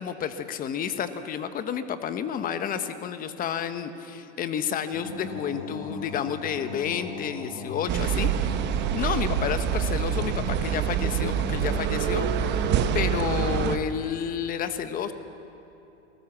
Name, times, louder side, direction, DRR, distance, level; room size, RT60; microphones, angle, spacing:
voice 1, 0.0-8.5 8.9-15.1, left 8 dB, 25° left, 10 dB, 1.3 m, -30 dB
sound 1, 4.9-13.5, left 3 dB, 65° left, 5.3 m, -39 dB
sound 2, 7.9-13.8, right 9 dB, 30° right, 1.1 m, -26 dB
27.5 x 19.5 x 7.3 m, 3.0 s
hypercardioid pair, 135°, 36 cm